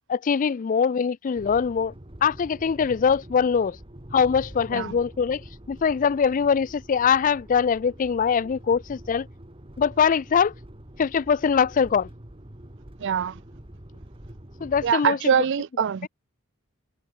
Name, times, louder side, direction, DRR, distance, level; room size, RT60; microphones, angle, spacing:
voice 1, 0.1-1.9 2.2-3.8 4.1-9.3 9.8-10.5 11.0-12.1 14.6-15.3, left 6 dB, 35° left, 0.3 m, -22 dB
sound 1, 1.4-14.9, right 1 dB, 25° right, 1.9 m, -45 dB
voice 2, 13.0-13.4 14.8-16.1, right 7 dB, 55° right, 0.4 m, -23 dB
head